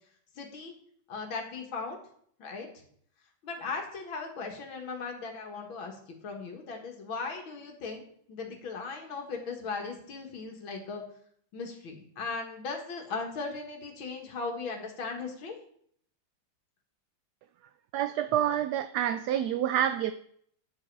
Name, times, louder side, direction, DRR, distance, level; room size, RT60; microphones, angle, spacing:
voice 1, 0.4-0.7 1.1-2.0 2.4-2.7 3.4-11.0 11.5-15.6, left 4 dB, 90° left, 2 dB, 2.4 m, -38 dB
voice 2, 17.9-20.1, right 11 dB, 75° right, 11 dB, 0.9 m, -28 dB
9.9 x 7.7 x 4.7 m, 0.63 s
omnidirectional pair, 2.1 m